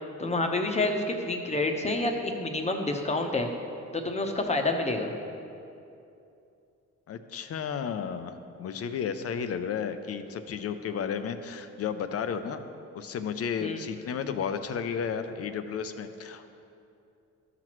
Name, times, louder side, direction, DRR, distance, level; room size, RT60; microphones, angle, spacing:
voice 1, 0.2-3.5 3.9-5.1 13.6-13.8, left 2 dB, 20° left, 3 dB, 0.9 m, -28 dB
voice 2, 7.1-12.6 12.9-16.5, left 7 dB, 50° left, 9 dB, 0.6 m, -33 dB
13.0 x 5.9 x 3.1 m, 2.6 s
cardioid pair, 90°, 30 cm